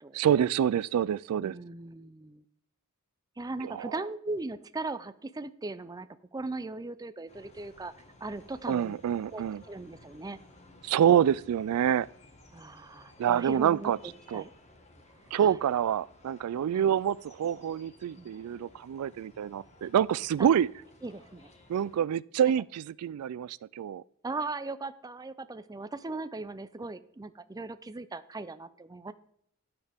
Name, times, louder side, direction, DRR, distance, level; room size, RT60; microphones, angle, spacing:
voice 1, 0.1-1.6 3.6-4.0 8.7-9.6 10.8-12.1 13.2-14.0 14.3-14.4 15.3-20.7 21.7-24.0, right 9 dB, 85° right, 0.3 m, -27 dB
voice 2, 1.4-2.4 3.4-7.9 8.2-9.0 9.3-10.4 12.5-14.5 15.4-15.6 16.7-16.9 18.2-18.3 20.4-20.5 21.0-21.5 24.2-29.1, right 3 dB, 15° right, 0.5 m, -38 dB
sound 1, 7.3-22.0, left 1 dB, 30° left, 1.5 m, -57 dB
12.5 x 8.9 x 3.5 m
head